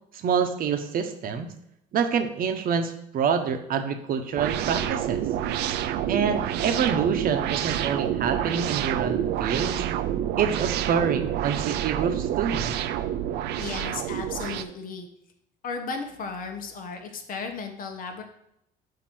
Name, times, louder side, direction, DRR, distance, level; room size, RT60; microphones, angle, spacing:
voice 1, 0.1-1.5 1.9-5.2 6.1-9.8 10.4-12.7, right 7 dB, 60° right, 7 dB, 0.9 m, -26 dB
sound 1, 4.4-14.6, right 11 dB, 80° right, 0.5 m, -28 dB
voice 2, 13.6-15.1 15.6-18.2, left 4 dB, 55° left, 5 dB, 1.2 m, -35 dB
8.3 x 2.9 x 6.1 m, 0.80 s
cardioid pair, 110°, 17 cm